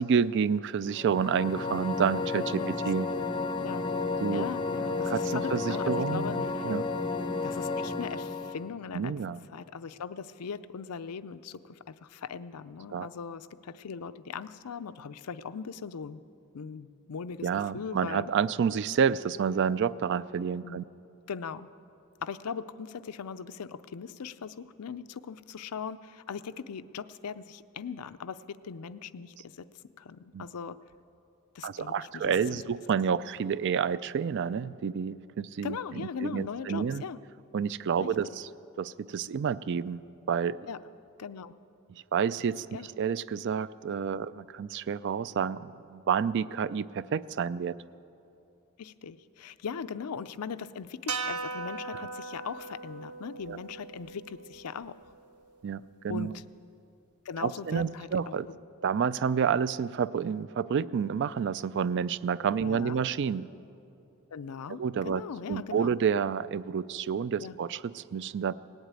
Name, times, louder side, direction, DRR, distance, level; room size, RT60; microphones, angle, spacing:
voice 1, 0.0-3.1 4.2-4.5 5.0-6.9 8.9-9.4 12.9-13.1 17.4-20.8 30.3-30.5 31.6-37.0 37.5-38.5 38.8-40.0 40.3-40.7 42.1-42.7 43.0-47.8 53.5-53.6 55.6-56.3 57.4-58.5 58.8-63.5 64.8-65.2 65.5-68.5, right 7 dB, 50° right, 18 dB, 0.3 m, -29 dB
sound 1, 0.9-8.7, left 3 dB, 20° left, 0.6 m, -32 dB
voice 2, 4.3-6.8 7.4-9.1 9.5-16.2 16.5-18.3 20.6-20.9 21.3-21.7 22.2-29.6 30.0-30.8 31.5-32.2 35.6-37.2 38.0-38.1 40.7-40.8 41.2-41.5 42.7-42.9 44.1-44.3 48.8-55.0 56.1-56.4 57.3-58.6 62.6-63.0 64.3-65.9 67.4-67.6, left 6 dB, 90° left, 13 dB, 0.5 m, -39 dB
sound 2, 51.1-55.4, right 4 dB, 90° right, 1.0 m, -39 dB
18.5 x 8.1 x 9.0 m, 2.7 s
head